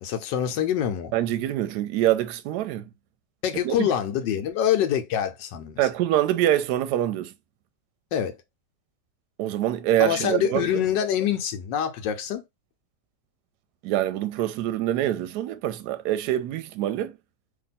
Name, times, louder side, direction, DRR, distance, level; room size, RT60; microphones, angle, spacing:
voice 1, 0.0-1.1 3.4-5.8 8.1-8.4 10.0-12.4, left 9 dB, 85° left, 1.3 m, -25 dB
voice 2, 1.1-2.8 3.6-3.9 5.8-7.3 9.4-10.8 13.8-17.1, right 13 dB, 75° right, 1.1 m, -25 dB
2.9 x 2.6 x 4.0 m
omnidirectional pair, 1.9 m